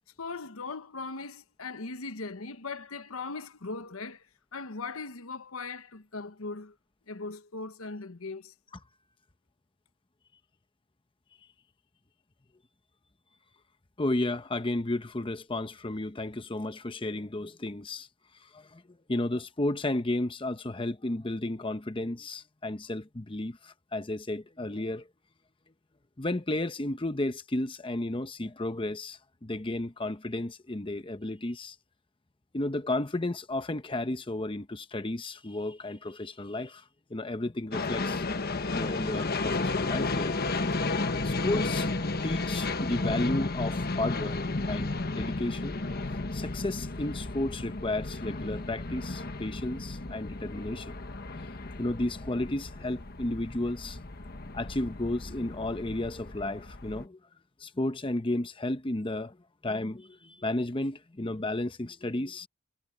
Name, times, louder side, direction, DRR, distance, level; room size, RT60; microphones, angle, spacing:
voice 1, 0.2-4.3 4.5-6.7 7.1-8.5, left 3 dB, 80° left, 1.1 m, -39 dB
voice 2, 14.0-18.1 18.4-18.8 19.1-25.1 26.2-31.8 32.5-36.8 37.1-38.2 38.7-40.4 41.2-42.0 42.2-45.8 46.3-51.0 51.6-54.0 54.5-57.2 57.6-59.4 59.6-62.5, left 1 dB, 25° left, 0.8 m, -33 dB
sound 1, 37.7-57.0, left 3 dB, 45° left, 1.2 m, -33 dB
head